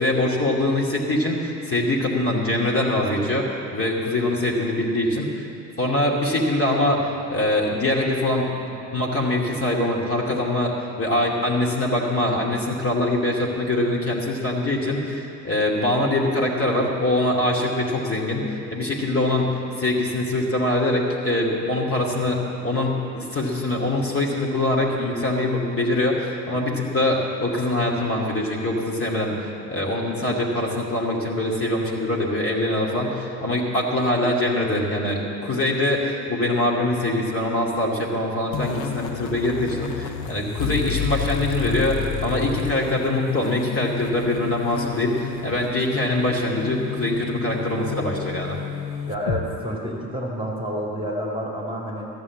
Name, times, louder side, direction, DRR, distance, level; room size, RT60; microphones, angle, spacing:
voice 1, 0.0-5.5 5.8-29.4 29.7-48.6, left 1 dB, 25° left, -2 dB, 2.6 m, -23 dB
sound 1, 38.5-49.4, left 8 dB, 50° left, 1.0 m, -31 dB
voice 2, 49.1-52.1, equal, 10° right, -2 dB, 2.2 m, -29 dB
14.0 x 7.1 x 8.6 m, 2.8 s
figure-of-eight pair, 55°, 50 cm